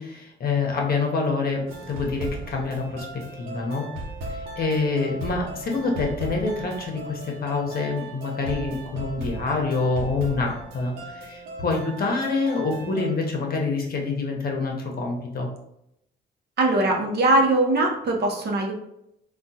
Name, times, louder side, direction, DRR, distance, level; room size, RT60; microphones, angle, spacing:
voice 1, 0.0-3.1 3.3-3.9 4.3-15.5, left 3 dB, 50° left, 0 dB, 0.8 m, -26 dB
sound 1, 1.7-13.1, right 1 dB, 85° right, 0.8 m, -37 dB
voice 2, 16.6-18.7, right 2 dB, 55° right, 1 dB, 0.7 m, -21 dB
3.4 x 2.3 x 2.7 m, 0.80 s
cardioid pair, 90°, 20 cm